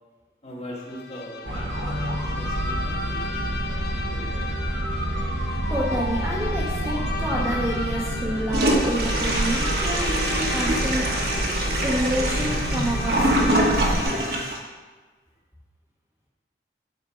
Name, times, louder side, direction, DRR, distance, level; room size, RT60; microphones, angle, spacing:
voice 1, 0.4-4.6, equal, 35° left, -3 dB, 1.7 m, -41 dB
Bowed string instrument, 0.8-14.7, left 4 dB, 60° left, 0.6 m, -36 dB
sound 1, 1.4-14.0, right 1 dB, 90° right, 1.3 m, -28 dB
voice 2, 5.7-13.8, equal, 10° right, -5 dB, 1.0 m, -29 dB
Toilet flush, 8.5-14.6, right 1 dB, 60° right, 1.3 m, -25 dB
11.5 x 4.4 x 5.1 m, 1.3 s
head